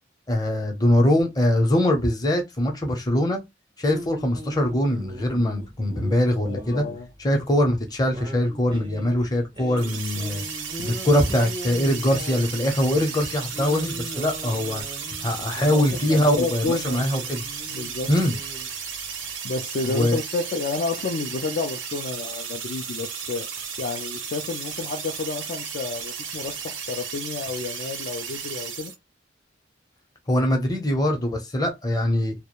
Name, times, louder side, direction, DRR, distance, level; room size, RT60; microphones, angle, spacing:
voice 1, 0.3-3.4 3.8-6.8 7.2-10.4 11.0-14.8 15.2-17.4 18.1-18.3 19.9-20.2 30.3-32.3, left 1 dB, 20° left, 0.6 m, -22 dB
sound 1, 3.9-19.4, equal, 25° right, 0.4 m, -40 dB
voice 2, 6.5-7.1 10.8-10.9 15.7-17.1 17.7-18.1 19.4-23.5 23.8-28.9, left 4 dB, 50° left, 0.3 m, -30 dB
sound 2, 9.8-29.0, right 6 dB, 90° right, 0.6 m, -34 dB
2.3 x 2.0 x 2.9 m
head